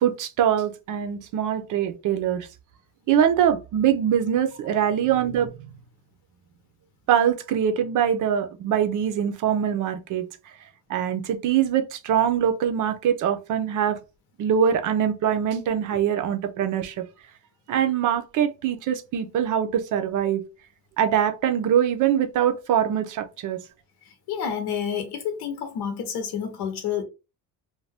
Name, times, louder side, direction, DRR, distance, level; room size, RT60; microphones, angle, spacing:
voice 1, 0.0-2.5 3.1-5.7 7.1-10.3 10.9-14.0 14.4-17.0 17.7-20.4 21.0-23.6, right 9 dB, 55° right, 0.5 m, -23 dB
voice 2, 24.1-27.0, left 8 dB, 80° left, 0.8 m, -29 dB
2.6 x 2.2 x 3.3 m
cardioid pair, 145°, 39 cm